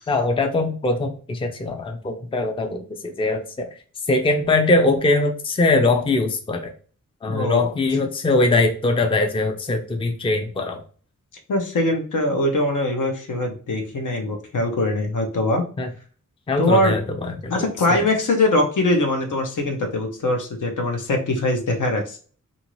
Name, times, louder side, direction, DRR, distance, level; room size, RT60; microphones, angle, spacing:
voice 1, 0.1-3.7 4.1-6.7 7.2-10.8 15.8-15.9 16.5-17.5 18.0-18.1, left 2 dB, 15° left, 5 dB, 0.4 m, -21 dB
voice 2, 7.3-7.6 11.5-15.6 16.6-17.0 17.5-22.2, left 1 dB, 75° left, 3 dB, 0.8 m, -22 dB
2.7 x 2.5 x 3.0 m, 0.41 s
wide cardioid pair, 110°, 31 cm